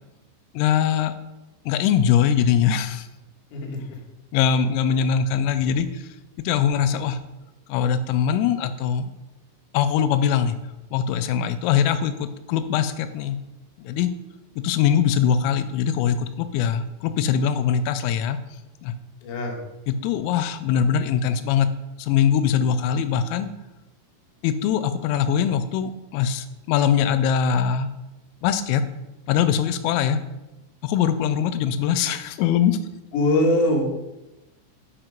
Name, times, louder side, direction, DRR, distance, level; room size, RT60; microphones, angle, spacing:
voice 1, 0.5-1.1 1.7-3.1 4.3-6.1 6.4-7.2 7.7-9.1 9.7-10.6 10.9-13.4 13.8-14.1 14.6-18.4 18.8-18.9 19.9-21.7 22.0-23.5 24.4-27.9 28.4-28.8 29.3-30.2 30.8-32.8, left 8 dB, 90° left, 11 dB, 3.2 m, -22 dB
voice 2, 19.2-19.6 33.1-33.9, left 1 dB, 70° left, 0 dB, 2.0 m, -21 dB
9.0 x 4.5 x 5.1 m, 1.0 s
omnidirectional pair, 5.8 m